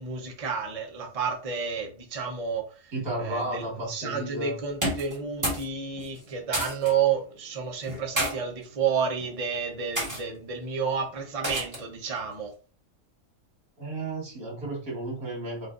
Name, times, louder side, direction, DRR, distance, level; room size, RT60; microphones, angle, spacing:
voice 1, 0.0-2.6 3.2-12.5, right 6 dB, 30° right, 1 dB, 0.8 m, -30 dB
voice 2, 2.9-4.6 13.8-15.7, right 2 dB, 85° right, -2 dB, 2.3 m, -33 dB
sound 1, 4.7-5.7 6.0-6.9 7.8-8.3 9.1-9.4 9.9-10.2 11.4-11.9, right 1 dB, 15° right, 1.5 m, -30 dB
5.1 x 2.6 x 2.5 m, 0.37 s
omnidirectional pair, 1.5 m